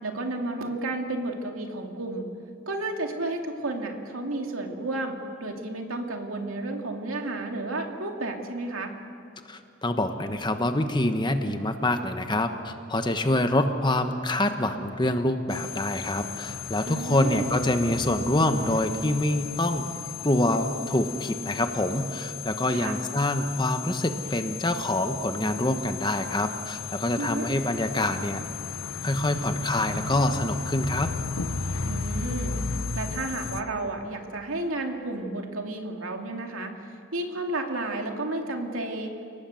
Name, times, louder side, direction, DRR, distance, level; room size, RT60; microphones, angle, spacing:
voice 1, 0.0-2.3 2.7-8.9 16.9-17.5 22.7-23.0 27.2-27.5 31.8-32.5 32.9-36.7 37.1-39.1, right 2 dB, 80° right, 3 dB, 2.6 m, -32 dB
voice 2, 9.5-19.9 20.2-28.4 29.0-31.1, left 1 dB, 20° left, 7 dB, 1.2 m, -26 dB
sound 1, 15.5-33.6, left 5 dB, 90° left, 1.0 m, -35 dB
30.0 x 19.0 x 7.7 m, 2.5 s
head